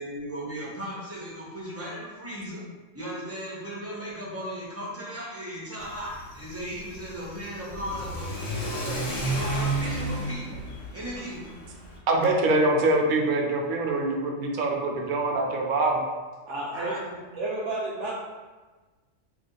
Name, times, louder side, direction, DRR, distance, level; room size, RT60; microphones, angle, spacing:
voice 1, 0.0-2.6 2.9-11.5 16.7-17.0, equal, 15° right, -6 dB, 0.7 m, -36 dB
Car / Accelerating revving vroom, 5.8-12.0, right 1 dB, 80° left, 1.0 m, -33 dB
voice 2, 12.1-16.0, right 2 dB, 60° right, 0 dB, 0.5 m, -24 dB
voice 3, 16.5-17.0 17.3-18.1, right 2 dB, 75° right, -6 dB, 0.9 m, -31 dB
2.7 x 2.4 x 3.7 m, 1.3 s
omnidirectional pair, 1.3 m